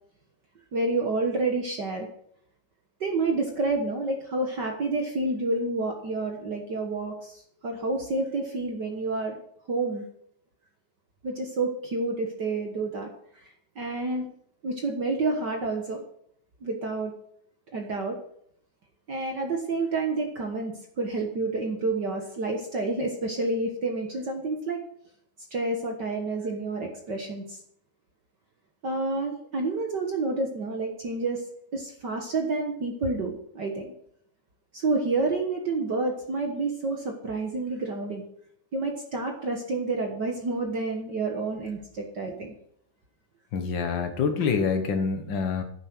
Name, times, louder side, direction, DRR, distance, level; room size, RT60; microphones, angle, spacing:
voice 1, 0.7-2.1 3.0-9.4 9.7-10.0 11.2-13.1 13.7-14.3 14.6-16.0 16.6-17.1 17.7-18.2 19.1-24.8 25.5-27.6 28.8-31.4 31.7-33.9 34.7-38.2 38.7-42.5, right 3 dB, 55° right, 2 dB, 1.2 m, -29 dB
voice 2, 43.5-45.6, left 5 dB, 65° left, 6 dB, 1.2 m, -26 dB
11.0 x 9.2 x 6.1 m, 0.68 s
omnidirectional pair, 3.9 m